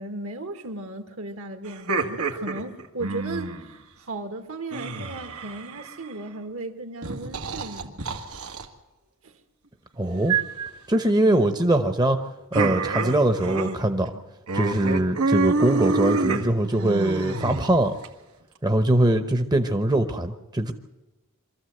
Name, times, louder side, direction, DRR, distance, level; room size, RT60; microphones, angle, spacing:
voice 1, 0.0-8.0 9.2-9.3 11.1-11.5, right 2 dB, 70° right, 1.9 m, -36 dB
sound 1, 1.7-3.7 4.7-6.1 7.0-8.7 10.3-10.7 12.5-13.8 14.1-14.2 14.5-18.1, right 3 dB, 85° right, 1.9 m, -27 dB
voice 2, 10.0-10.4 10.9-12.2 12.5-14.1 14.5-17.9 18.6-20.7, right 1 dB, 20° right, 0.9 m, -22 dB
24.0 x 14.0 x 7.9 m
head